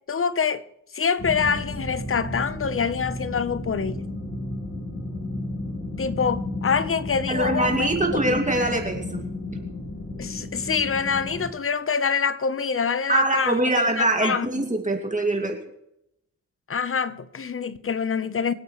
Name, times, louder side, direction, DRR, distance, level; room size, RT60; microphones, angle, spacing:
voice 1, 0.1-0.6 0.9-4.1 6.0-7.9 8.3-8.5 10.2-14.6 16.7-18.5, left 6 dB, 45° left, 0.9 m, -26 dB
sound 1, 1.2-11.5, left 2 dB, 60° left, 4.2 m, -32 dB
voice 2, 7.3-9.2 13.1-15.6, right 2 dB, 25° right, 2.3 m, -23 dB
25.0 x 8.4 x 3.2 m
cardioid pair, 65°, 32 cm